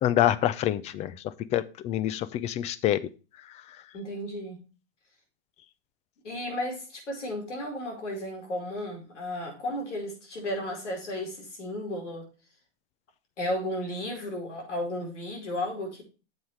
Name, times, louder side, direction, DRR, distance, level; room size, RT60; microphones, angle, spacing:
voice 1, 0.0-3.1, left 12 dB, 20° left, 0.4 m, -26 dB
voice 2, 3.9-4.6 6.2-12.2 13.4-16.0, left 1 dB, 90° left, 4.8 m, -34 dB
9.3 x 7.3 x 3.3 m
hypercardioid pair, 125°, 35 cm